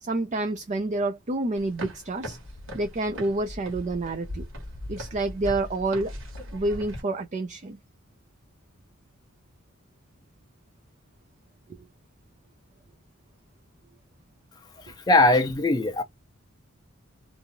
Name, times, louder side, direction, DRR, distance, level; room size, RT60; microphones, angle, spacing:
voice 1, 0.0-2.4 2.7-4.5 4.9-6.1 6.5-7.8 11.7-11.8, right 2 dB, 35° right, 0.4 m, -28 dB
sound 1, 1.6-7.0, equal, 65° right, 1.4 m, -39 dB
voice 2, 15.1-16.0, left 2 dB, 20° left, 0.5 m, -20 dB
2.6 x 2.3 x 2.9 m
head